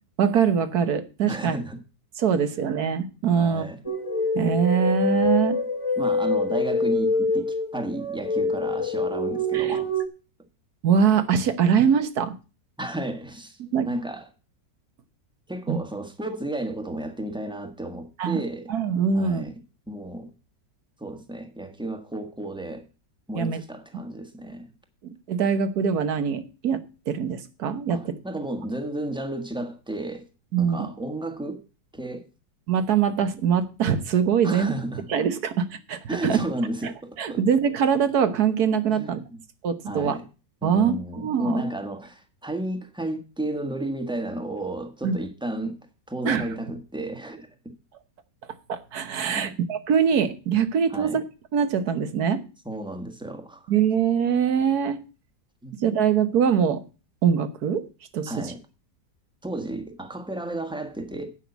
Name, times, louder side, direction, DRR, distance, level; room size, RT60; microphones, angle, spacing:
voice 1, 0.2-1.6 2.2-3.6 4.3-5.6 9.5-9.8 10.8-12.3 13.7-13.9 15.7-15.8 18.2-18.4 18.7-19.5 23.3-23.6 25.3-28.1 30.5-30.8 32.7-34.7 35.1-36.4 37.2-39.2 39.6-40.2 40.6-41.6 45.0-45.2 46.2-46.5 48.7-51.2 51.5-52.4 53.7-55.0 55.8-56.8 57.2-57.8 58.1-58.5, right 7 dB, 60° right, 1.6 m, -23 dB
voice 2, 1.3-1.8 3.3-3.8 6.0-9.9 12.8-13.6 13.8-14.3 15.5-18.7 19.1-19.5 19.9-20.3 21.0-22.8 23.3-24.7 27.9-30.2 30.6-31.6 31.9-32.3 34.4-35.1 36.1-37.4 38.9-39.4 39.8-40.2 40.6-45.8 46.1-47.5 49.3-49.5 50.9-51.2 52.6-53.7 55.6-55.8 58.3-58.6 59.4-61.3, right 1 dB, 5° right, 1.3 m, -32 dB
sound 1, 3.8-10.0, left 2 dB, 20° left, 1.3 m, -25 dB
9.4 x 5.7 x 8.0 m
omnidirectional pair, 1.9 m